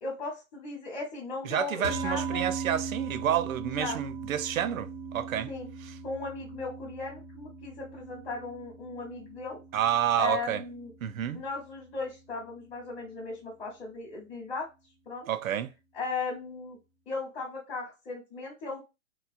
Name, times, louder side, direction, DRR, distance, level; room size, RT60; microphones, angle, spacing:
voice 1, 0.0-2.5 3.8-4.0 5.5-5.7 6.0-9.6 10.2-10.9 11.3-14.7 15.1-15.3 15.9-16.8 17.1-18.8, left 4 dB, 15° left, 0.9 m, -37 dB
voice 2, 1.4-5.5 5.8-5.9 9.7-10.6 11.0-11.4 15.3-15.7, right 10 dB, 85° right, 0.5 m, -29 dB
sound 1, 1.8-12.3, right 5 dB, 20° right, 0.5 m, -40 dB
3.0 x 2.3 x 2.4 m
hypercardioid pair, 135°, 40 cm